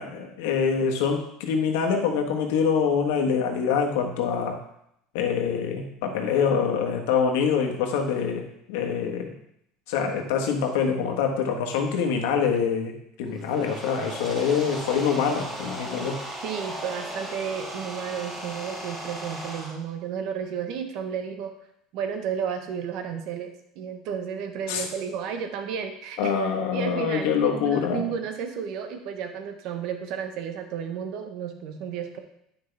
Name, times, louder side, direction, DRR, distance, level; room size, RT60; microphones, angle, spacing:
voice 1, 0.0-4.6 5.1-9.3 9.9-12.9 13.2-16.2 24.7-24.9 26.2-28.1, left 6 dB, 80° left, 3 dB, 1.4 m, -25 dB
sound 1, 13.3-19.7, right 1 dB, 20° right, 2.9 m, -36 dB
voice 2, 16.4-21.5 21.9-26.3 26.7-32.2, right 7 dB, 60° right, 6 dB, 1.1 m, -32 dB
9.3 x 6.0 x 3.5 m, 0.76 s
supercardioid pair, 120°, 0 cm